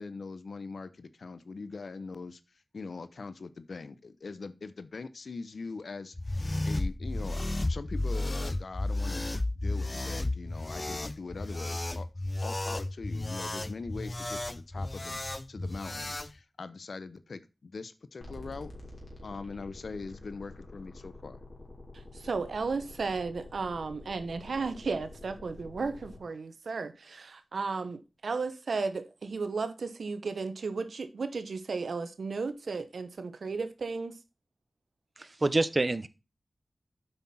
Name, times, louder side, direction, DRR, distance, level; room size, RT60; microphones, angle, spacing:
voice 1, 0.0-2.4 2.7-12.1 12.4-15.2 15.5-18.7 19.2-21.4, left 4 dB, 80° left, 0.8 m, -42 dB
sound 1, 6.1-16.3, left 2 dB, 35° left, 0.5 m, -33 dB
sound 2, 18.2-26.2, left 2 dB, 60° left, 3.5 m, -48 dB
voice 2, 22.1-34.2, right 4 dB, 90° right, 0.9 m, -34 dB
voice 3, 35.2-36.1, right 2 dB, 50° right, 0.8 m, -27 dB
7.9 x 5.9 x 4.2 m
cardioid pair, 40°, 0 cm